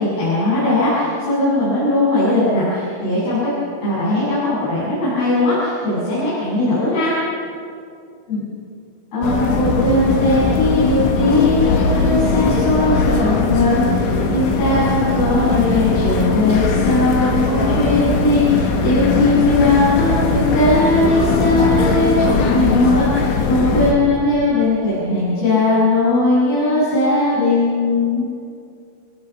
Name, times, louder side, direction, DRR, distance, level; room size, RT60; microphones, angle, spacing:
voice 1, 0.0-3.5 3.8-7.1 8.3-8.4 9.1-28.2, left 2 dB, 50° left, -11 dB, 10.0 m, -18 dB
sound 1, 9.2-23.9, left 3 dB, 70° left, 4.5 m, -19 dB
29.5 x 22.5 x 6.1 m, 2.4 s
omnidirectional pair, 5.8 m